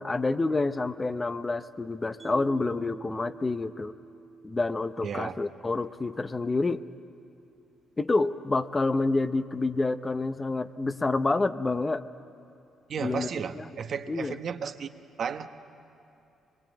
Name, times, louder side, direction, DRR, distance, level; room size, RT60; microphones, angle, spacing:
voice 1, 0.0-3.9 4.4-6.9 8.0-12.0 13.0-13.3 13.6-13.7 14.1-14.4, left 3 dB, 25° left, 11 dB, 0.7 m, -28 dB
Mallet percussion, 2.2-5.5, right 5 dB, 30° right, 1.2 m, -48 dB
voice 2, 5.0-5.3 12.9-14.9 15.2-15.5, right 7 dB, 55° right, 8 dB, 1.0 m, -33 dB
24.0 x 21.5 x 8.5 m, 2.7 s
cardioid pair, 90°, 0 cm